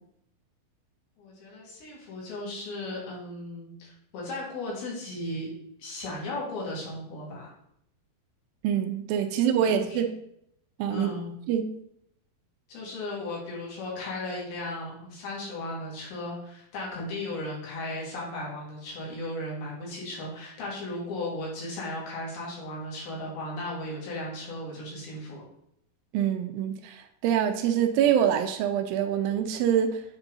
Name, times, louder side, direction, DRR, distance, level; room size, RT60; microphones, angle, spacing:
voice 1, 1.2-5.5 5.8-7.5 9.3-10.0 10.9-11.3 12.7-25.4, left 1 dB, 90° left, -5 dB, 4.0 m, -36 dB
voice 2, 8.6-10.1 10.8-11.1 11.5-11.7 26.1-30.0, right 9 dB, 80° right, 7 dB, 2.2 m, -25 dB
8.9 x 3.6 x 3.9 m, 0.75 s
omnidirectional pair, 4.3 m